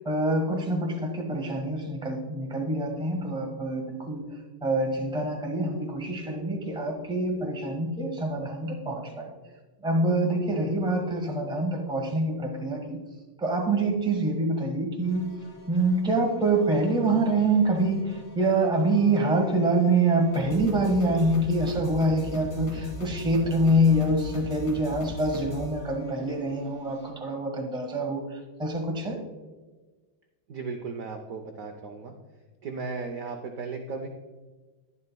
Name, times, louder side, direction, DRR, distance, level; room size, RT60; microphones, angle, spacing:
voice 1, 0.0-4.2 4.6-9.3 9.8-13.0 13.4-15.3 15.7-29.2, right 2 dB, 5° right, 1 dB, 0.9 m, -25 dB
sound 1, 15.0-27.1, left 3 dB, 45° left, 2.0 m, -41 dB
voice 2, 30.5-32.1 32.6-34.1, right 4 dB, 70° right, 5 dB, 0.8 m, -35 dB
11.0 x 10.5 x 2.2 m, 1.3 s
omnidirectional pair, 2.2 m